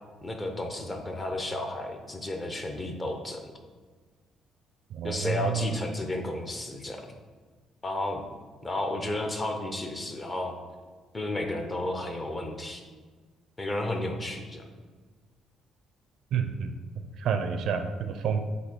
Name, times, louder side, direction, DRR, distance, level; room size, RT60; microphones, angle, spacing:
voice 1, 0.2-3.4 5.0-7.0 7.8-8.2 8.6-10.6 11.1-12.8 13.6-14.6, left 1 dB, 15° left, 4 dB, 0.7 m, -32 dB
voice 2, 4.9-5.6 16.3-16.7 17.2-18.4, right 7 dB, 55° right, 7 dB, 0.5 m, -29 dB
8.1 x 2.7 x 5.9 m, 1.4 s
cardioid pair, 165°, 0 cm